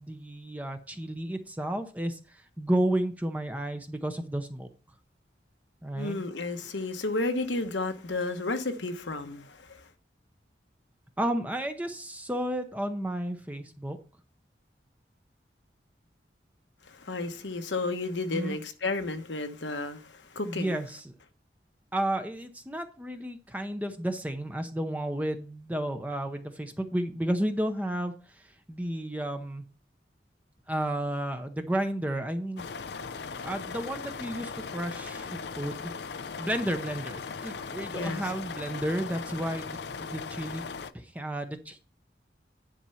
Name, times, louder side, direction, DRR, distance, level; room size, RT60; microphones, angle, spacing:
voice 1, 0.0-4.7 5.8-6.2 11.2-14.0 18.3-18.6 20.4-21.1 21.9-28.1 28.7-29.6 30.7-32.6 33.4-35.9 36.4-40.6 40.9-41.8, right 1 dB, 10° right, 0.7 m, -32 dB
voice 2, 5.9-9.9 16.9-20.8 37.9-38.2, left 2 dB, 90° left, 1.1 m, -32 dB
sound 1, 32.6-40.9, left 5 dB, 70° left, 0.5 m, -38 dB
10.0 x 4.3 x 5.7 m
head